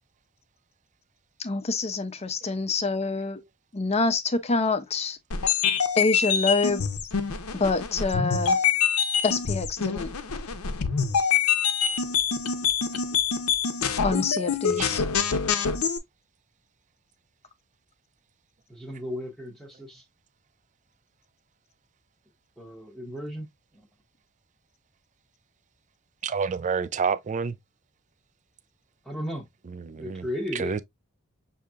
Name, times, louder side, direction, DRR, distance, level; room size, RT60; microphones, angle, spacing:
voice 1, 1.4-3.4 3.7-5.2 5.9-6.8 7.5-8.6 9.2-10.1 14.0-15.0, left 3 dB, 30° left, 0.6 m, -26 dB
sound 1, 5.3-16.0, left 6 dB, 70° left, 0.7 m, -25 dB
voice 2, 14.6-15.3 26.2-27.6 29.7-30.3 30.5-30.8, right 5 dB, 35° right, 0.4 m, -29 dB
voice 3, 18.7-20.0 22.6-23.5 23.7-23.9 29.0-29.5 30.0-30.7, left 1 dB, ahead, 0.9 m, -35 dB
6.3 x 2.7 x 2.4 m
head